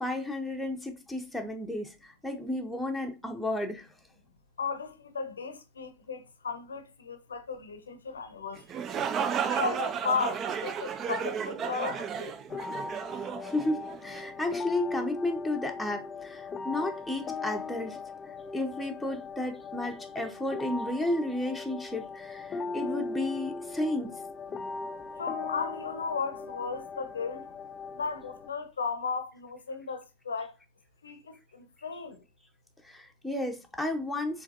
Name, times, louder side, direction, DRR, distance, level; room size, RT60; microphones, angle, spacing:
voice 1, 0.0-3.9 13.4-18.0 18.5-24.1 32.8-34.4, left 1 dB, ahead, 0.8 m, -33 dB
voice 2, 4.6-8.9 9.4-12.3 25.2-27.5 27.9-30.5 31.0-32.2, left 5 dB, 80° left, 0.7 m, -35 dB
sound 1, 8.6-14.3, right 7 dB, 35° right, 0.5 m, -33 dB
sound 2, 12.5-28.5, left 4 dB, 25° left, 0.4 m, -39 dB
4.8 x 3.3 x 2.6 m
figure-of-eight pair, 85°, 0 cm